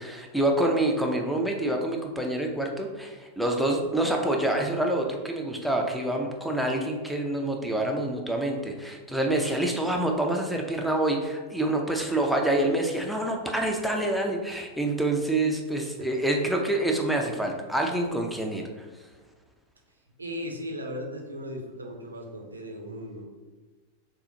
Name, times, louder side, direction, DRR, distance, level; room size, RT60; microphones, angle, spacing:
voice 1, 0.0-18.6, right 1 dB, ahead, 2 dB, 0.6 m, -27 dB
voice 2, 20.2-23.2, equal, 80° right, 1 dB, 0.7 m, -37 dB
6.4 x 2.4 x 2.7 m, 1.3 s
figure-of-eight pair, 90°, 0 cm